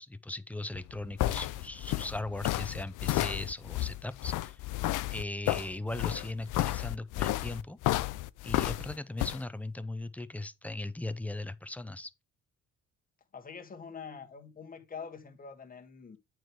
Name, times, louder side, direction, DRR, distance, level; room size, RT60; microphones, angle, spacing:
voice 1, 0.0-4.6 5.1-7.8 8.4-12.1, left 2 dB, 5° left, 0.6 m, -38 dB
sound 1, 0.7-9.4, left 16 dB, 80° left, 0.5 m, -32 dB
voice 2, 13.3-16.2, left 6 dB, 30° left, 1.6 m, -45 dB
8.9 x 4.7 x 4.6 m
cardioid pair, 130°, 31 cm